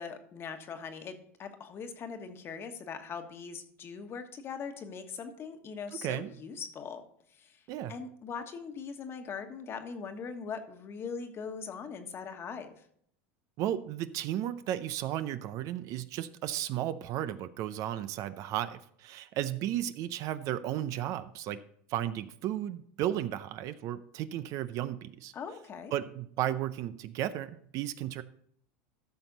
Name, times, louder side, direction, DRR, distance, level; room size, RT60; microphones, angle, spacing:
voice 1, 0.0-7.0 7.3-7.6 7.9-12.7 25.3-25.9, left 6 dB, 35° left, 7 dB, 1.4 m, -41 dB
voice 2, 6.0-6.3 7.7-7.9 13.6-21.6 21.9-25.3 25.9-28.2, right 12 dB, 50° right, 13 dB, 0.6 m, -34 dB
13.5 x 6.0 x 4.0 m, 0.65 s
supercardioid pair, 105°, 7 cm